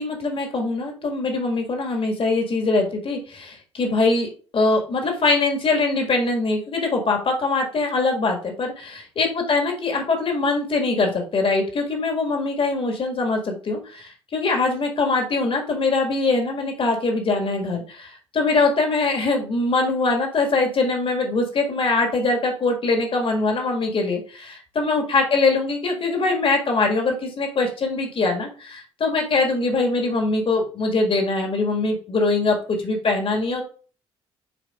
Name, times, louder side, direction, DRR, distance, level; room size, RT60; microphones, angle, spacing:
voice 1, 0.0-33.6, left 3 dB, 40° left, 2 dB, 1.8 m, -22 dB
9.4 x 4.5 x 2.4 m, 0.40 s
figure-of-eight pair, 45°, 14 cm